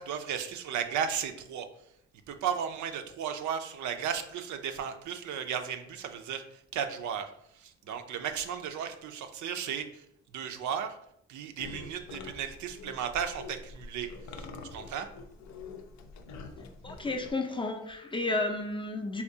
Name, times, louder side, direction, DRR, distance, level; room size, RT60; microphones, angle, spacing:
voice 1, 0.0-1.7 2.3-6.4 6.7-7.3 7.6-9.9 10.3-11.0 11.3-14.1 14.7-15.1, right 8 dB, 70° right, 7 dB, 0.5 m, -34 dB
sound 1, 11.6-17.3, left 3 dB, 70° left, 0.5 m, -45 dB
voice 2, 16.8-19.2, left 2 dB, 15° left, 4 dB, 0.4 m, -32 dB
3.5 x 2.8 x 2.7 m, 0.73 s
cardioid pair, 90°, 30 cm